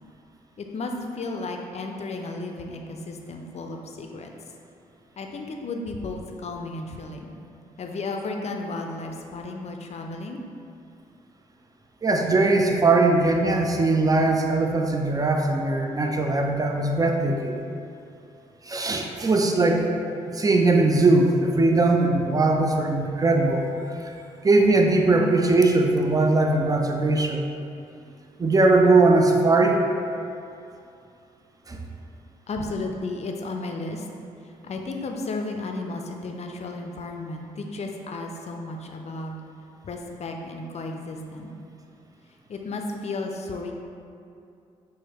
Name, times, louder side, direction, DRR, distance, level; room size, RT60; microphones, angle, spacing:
voice 1, 0.6-4.3 5.2-7.3 7.8-10.4 32.5-34.1 34.6-39.4 39.8-41.5 42.5-43.7, left 2 dB, 40° left, 2 dB, 0.5 m, -33 dB
voice 2, 12.0-17.6 18.7-19.9 20.3-23.6 24.4-27.5 28.4-29.8 31.7-31.8, right 2 dB, 20° right, 2 dB, 0.5 m, -20 dB
6.1 x 2.2 x 2.9 m, 2.5 s
hypercardioid pair, 40°, 17 cm